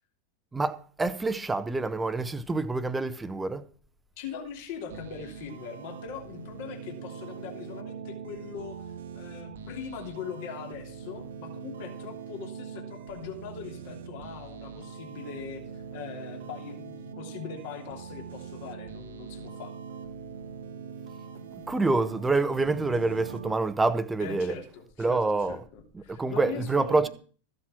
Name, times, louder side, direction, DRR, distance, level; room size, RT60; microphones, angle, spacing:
voice 1, 0.5-3.6 21.7-24.5 25.0-25.6 25.9-27.1, right 3 dB, 10° right, 1.0 m, -27 dB
voice 2, 4.2-19.7 24.2-27.1, left 6 dB, 50° left, 2.9 m, -41 dB
sound 1, 4.9-23.5, right 6 dB, 60° right, 1.3 m, -42 dB
14.5 x 7.4 x 6.1 m
figure-of-eight pair, 90°, 0 cm